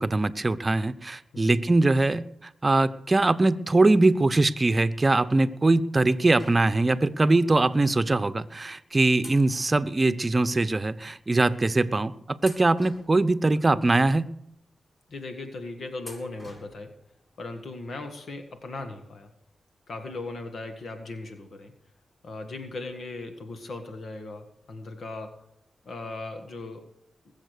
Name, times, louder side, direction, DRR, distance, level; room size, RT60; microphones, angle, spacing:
voice 1, 0.0-2.3 2.6-14.3, right 2 dB, 35° right, 14 dB, 0.8 m, -22 dB
sound 1, 6.3-7.1 8.0-8.1 9.2-10.6 10.9-11.0 11.7-12.0 12.4-13.7 14.2-14.3 16.0-17.0 17.3-17.4 18.5-18.6 18.9-19.0, left 1 dB, 25° left, 7.5 m, -49 dB
voice 2, 15.1-16.9 17.4-19.3 19.9-21.7 22.2-25.4 25.9-26.9, left 2 dB, 70° left, 6 dB, 1.7 m, -38 dB
20.5 x 7.3 x 6.7 m, 0.78 s
cardioid pair, 55°, 0 cm